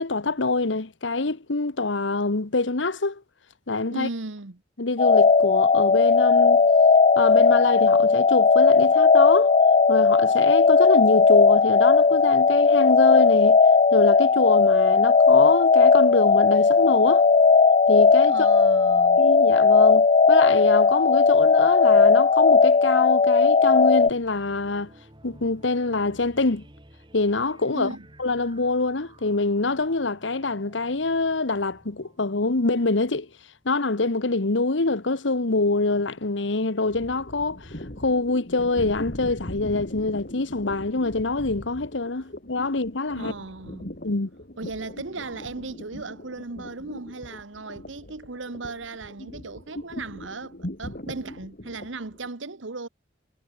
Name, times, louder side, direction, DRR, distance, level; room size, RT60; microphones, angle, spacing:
voice 1, 0.0-3.2 3.7-4.1 4.8-6.6 7.2-9.5 9.9-13.6 13.9-17.3 17.9-18.5 19.2-24.9 25.2-26.7 27.1-27.9 28.2-33.3 33.6-43.3 44.0-44.3, left 3 dB, 70° left, 1.3 m, -25 dB
voice 2, 3.9-4.6 18.3-19.3 27.7-28.1 43.1-43.9 44.6-52.9, right 3 dB, 80° right, 1.4 m, -36 dB
sound 1, 5.0-24.1, left 4 dB, 35° left, 0.5 m, -17 dB
sound 2, 23.7-33.9, right 1 dB, 25° right, 4.9 m, -53 dB
sound 3, 36.9-52.3, left 1 dB, 50° left, 4.3 m, -40 dB
head